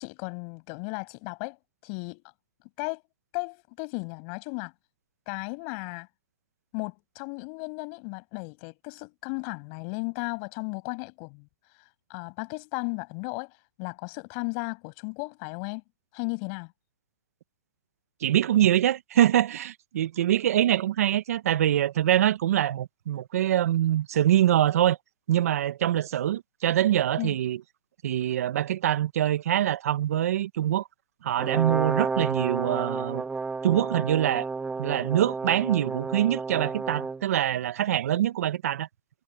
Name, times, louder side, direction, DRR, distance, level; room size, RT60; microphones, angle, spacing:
voice 1, 0.0-1.6 1.8-2.2 2.8-3.0 3.3-4.7 5.3-6.1 6.7-11.5 12.1-13.5 13.8-15.8 16.1-16.7 27.2-27.3, left 40 dB or more, 40° left, 7.6 m, -35 dB
voice 2, 18.2-25.0 25.3-27.6 28.0-30.8 31.2-33.2 33.6-34.5 34.8-38.9, right 12 dB, 60° right, 1.6 m, -24 dB
Brass instrument, 31.4-37.2, right 4 dB, 10° right, 1.9 m, -31 dB
hypercardioid pair, 140°, 9 cm